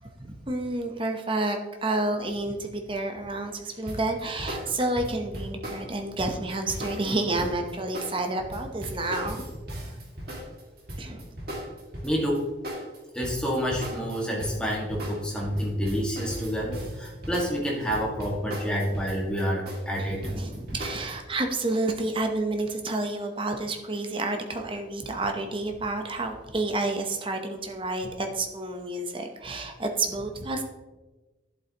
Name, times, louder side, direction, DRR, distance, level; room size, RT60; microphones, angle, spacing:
voice 1, 0.0-9.5 9.8-9.9 11.0-11.4 20.0-30.6, right 2 dB, 25° right, 4 dB, 0.9 m, -30 dB
sound 1, 3.9-12.4 12.6-21.1, equal, 50° right, 2.2 m, -37 dB
voice 2, 12.0-12.5 13.1-20.2, equal, 5° left, -3 dB, 1.7 m, -28 dB
11.5 x 7.7 x 2.9 m, 1.2 s
head